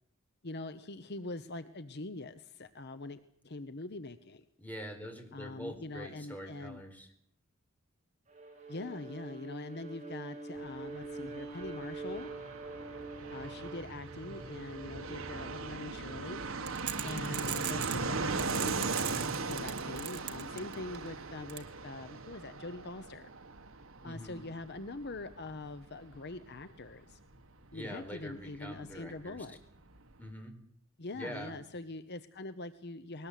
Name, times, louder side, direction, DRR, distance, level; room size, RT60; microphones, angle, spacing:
voice 1, 0.4-4.4 5.3-6.8 8.7-12.3 13.3-16.4 17.0-19.0 19.4-23.3 24.0-27.2 27.7-29.6 31.0-33.3, left 2 dB, 50° left, 11 dB, 1.0 m, -43 dB
voice 2, 4.6-7.1 24.0-24.4 27.7-29.4 30.2-30.6 31.1-31.5, equal, 10° left, 4 dB, 4.6 m, -44 dB
Bowed string instrument, 8.3-16.7, right 3 dB, 35° right, 5.6 m, -45 dB
Fixed-wing aircraft airplane, 10.6-28.9 29.2-29.3 29.5-30.2, right 3 dB, 65° right, 1.7 m, -39 dB
sound 1, 16.7-18.0 18.4-21.0 21.5-21.6, right 12 dB, 50° right, 2.1 m, -38 dB
21.0 x 19.5 x 8.4 m, 0.68 s
head